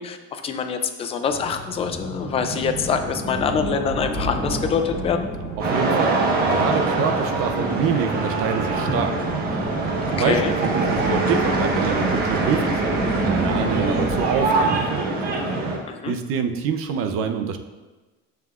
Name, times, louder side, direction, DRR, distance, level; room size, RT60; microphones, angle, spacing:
voice 1, 0.0-5.3 10.2-10.5 15.9-16.1, left 6 dB, 20° left, 7 dB, 0.4 m, -25 dB
sound 1, 1.3-14.8, right 1 dB, 5° right, 1.3 m, -30 dB
sound 2, 5.6-15.8, right 3 dB, 30° right, 1.3 m, -24 dB
voice 2, 5.6-6.2 6.5-9.2 10.1-15.2 16.1-17.6, right 6 dB, 45° right, 7 dB, 0.7 m, -26 dB
14.5 x 5.9 x 2.5 m, 1.2 s
cardioid pair, 175°, 31 cm